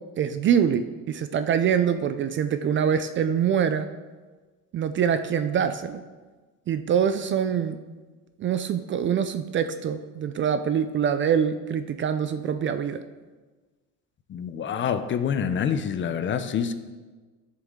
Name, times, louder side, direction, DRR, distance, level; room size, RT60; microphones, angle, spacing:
voice 1, 0.2-3.9 4.7-6.0 6.7-7.8 8.4-13.0, right 8 dB, 35° right, 10 dB, 0.4 m, -24 dB
voice 2, 14.3-16.7, left 7 dB, 35° left, 11 dB, 0.5 m, -26 dB
12.5 x 6.6 x 3.7 m, 1.3 s
cardioid pair, 135°, 36 cm